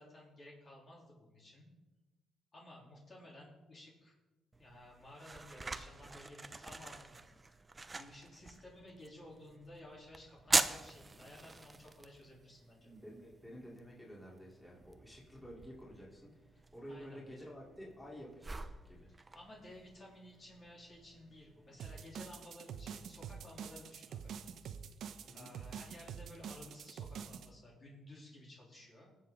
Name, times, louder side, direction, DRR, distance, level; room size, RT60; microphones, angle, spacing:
voice 1, 0.0-1.7 2.5-4.1 4.6-7.3 7.9-12.9 16.9-17.3 19.3-24.3 25.3-29.1, left 1 dB, 40° left, -4 dB, 3.6 m, -55 dB
sound 1, 4.5-22.1, right 3 dB, 20° right, 0.7 m, -43 dB
voice 2, 12.8-19.1 25.3-25.5, equal, 10° left, -4 dB, 3.7 m, -51 dB
sound 2, 21.8-27.5, right 7 dB, 70° right, 0.8 m, -46 dB
19.0 x 7.6 x 3.9 m, 1.1 s
cardioid pair, 90°, 0 cm